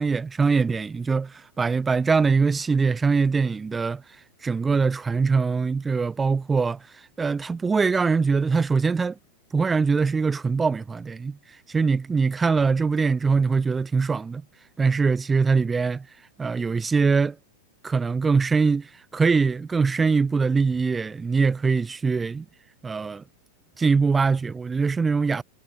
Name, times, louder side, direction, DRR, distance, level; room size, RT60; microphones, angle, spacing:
voice 1, 0.0-4.0 4.4-9.2 9.5-14.4 14.8-16.1 16.4-17.4 17.8-22.4 22.8-23.2 23.8-25.4, right 4 dB, 15° right, 0.8 m, -23 dB
figure-of-eight pair, 90°, 0 cm